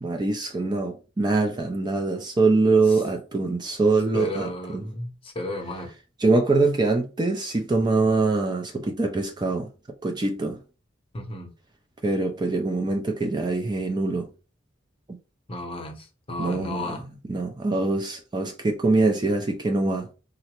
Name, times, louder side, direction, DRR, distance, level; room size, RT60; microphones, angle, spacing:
voice 1, 0.0-4.8 6.2-9.7 10.0-10.6 12.0-14.3 15.1-15.2 16.4-16.9 17.3-20.1, right 3 dB, 25° right, 0.4 m, -23 dB
voice 2, 4.1-5.9 11.1-11.5 15.5-17.0, left 1 dB, 30° left, 0.7 m, -33 dB
3.9 x 2.1 x 2.9 m
head